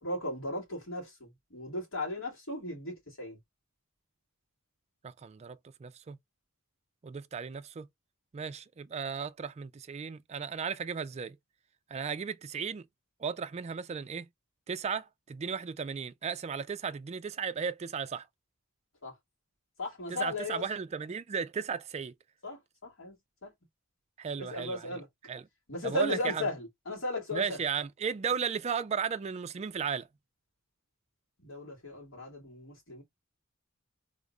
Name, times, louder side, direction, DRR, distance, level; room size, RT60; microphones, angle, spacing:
voice 1, 0.0-3.4 19.0-19.1 19.8-20.7 22.4-23.1 23.4-23.5 24.4-25.1 25.7-27.6 31.4-33.0, left 2 dB, 70° left, 2.2 m, -36 dB
voice 2, 5.0-6.2 7.0-7.9 8.3-11.4 11.9-12.8 13.2-14.3 14.7-18.3 20.1-22.1 24.2-25.0 25.3-25.4 25.8-26.5 27.3-30.1, right 6 dB, 30° right, 0.3 m, -35 dB
3.5 x 2.5 x 3.2 m
head